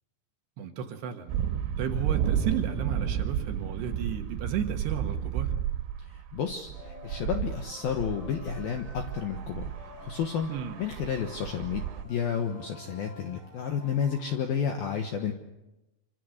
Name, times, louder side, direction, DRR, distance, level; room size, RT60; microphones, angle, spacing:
voice 1, 0.6-1.3 1.8-5.5 10.5-10.8, right 8 dB, 65° right, 5 dB, 3.1 m, -33 dB
sound 1, 1.3-12.0, right 9 dB, 85° right, 4.0 m, -32 dB
voice 2, 6.1-9.7 10.0-10.5 10.8-15.3, left 7 dB, 70° left, 4 dB, 2.3 m, -31 dB
sound 2, 6.7-14.4, left 1 dB, 35° right, 8.2 m, -50 dB
26.5 x 26.0 x 6.6 m, 0.99 s
omnidirectional pair, 6.0 m